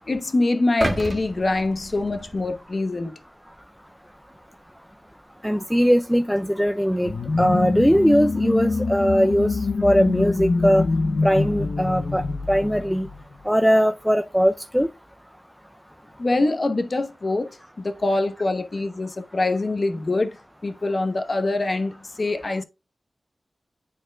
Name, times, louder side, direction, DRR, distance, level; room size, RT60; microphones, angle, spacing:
voice 1, 0.1-3.1 16.2-17.5 17.8-20.4 20.6-22.6, left 2 dB, 50° left, 0.9 m, -24 dB
sound 1, 0.8-3.0 3.4-3.6, right 1 dB, 25° right, 0.7 m, -31 dB
voice 2, 5.4-7.1 7.4-10.8 11.2-13.1 13.5-14.9, equal, ahead, 0.4 m, -20 dB
sound 2, 7.0-13.5, left 3 dB, 70° left, 0.6 m, -25 dB
10.0 x 4.3 x 2.2 m
wide cardioid pair, 90°, 0 cm